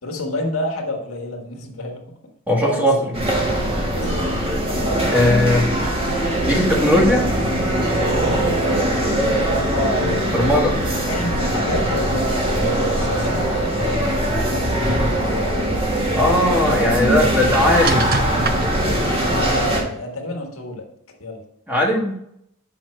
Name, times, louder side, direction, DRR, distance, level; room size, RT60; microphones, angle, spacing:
voice 1, 0.0-2.0 2.6-3.1 3.9-4.4 8.5-14.7 15.0-15.8 17.4-17.5 19.2-20.8 21.2-21.4, left 1 dB, 85° left, 0 dB, 1.5 m, -29 dB
voice 2, 2.5-2.9 5.1-5.7 6.4-7.2 10.3-10.8 16.1-18.1 21.7-22.1, left 1 dB, 10° right, -2 dB, 1.5 m, -18 dB
sound 1, 3.1-19.8, right 1 dB, 25° right, 1.5 m, -21 dB
sound 2, 16.7-19.4, right 4 dB, 45° right, 0.6 m, -31 dB
7.1 x 5.8 x 3.2 m, 0.75 s
head